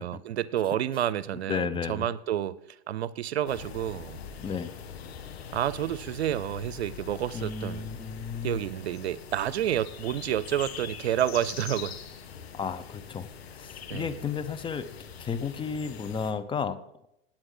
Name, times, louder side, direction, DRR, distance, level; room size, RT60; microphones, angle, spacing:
voice 1, 0.0-2.6 2.9-4.2 5.5-7.8 8.4-12.0 13.9-14.1, right 11 dB, 85° right, 0.7 m, -29 dB
voice 2, 1.5-2.1 4.4-4.7 7.3-8.6 12.5-14.9 15.2-16.8, left 6 dB, 15° left, 0.7 m, -33 dB
sound 1, 3.5-16.3, left 7 dB, 75° left, 2.0 m, -43 dB
18.5 x 8.7 x 3.9 m
hypercardioid pair, 120°, 31 cm